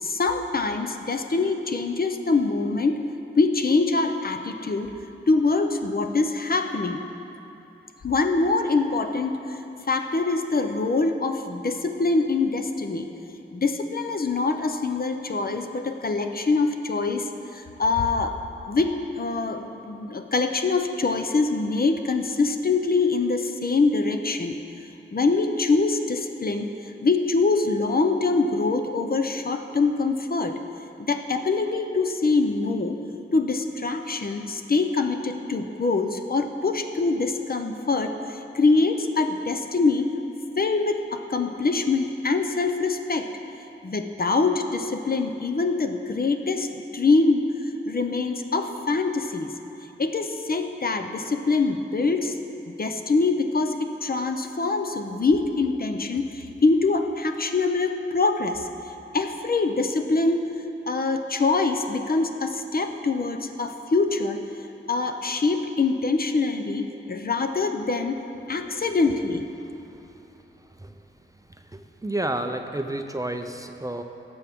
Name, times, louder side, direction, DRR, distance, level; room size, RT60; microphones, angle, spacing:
voice 1, 0.0-3.0 3.4-4.9 5.3-7.0 8.0-9.6 9.9-13.1 13.5-17.3 17.5-18.4 18.7-24.6 25.1-26.7 27.0-30.6 31.0-33.0 33.3-40.1 40.6-43.3 43.8-47.5 47.9-49.5 50.0-52.4 52.7-58.7 59.1-60.5 60.9-64.4 64.9-68.2 68.5-69.5, left 3 dB, 45° left, 6 dB, 0.6 m, -24 dB
voice 2, 71.6-74.0, right 1 dB, 15° right, 5 dB, 0.5 m, -30 dB
17.5 x 6.9 x 3.6 m, 2.9 s
wide cardioid pair, 100°, 21 cm